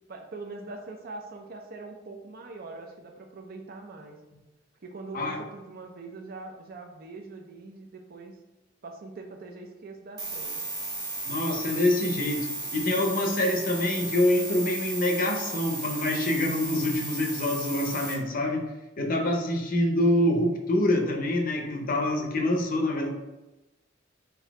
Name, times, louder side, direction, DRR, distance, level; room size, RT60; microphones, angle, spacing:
voice 1, 0.1-4.2 4.8-8.4 8.8-10.6, right 3 dB, 50° right, 3 dB, 0.5 m, -42 dB
sound 1, 10.2-18.2, right 2 dB, 20° right, 1.0 m, -35 dB
voice 2, 11.3-18.6 19.0-23.1, left 1 dB, 50° left, 3 dB, 0.6 m, -26 dB
4.0 x 2.7 x 4.5 m, 1.0 s
head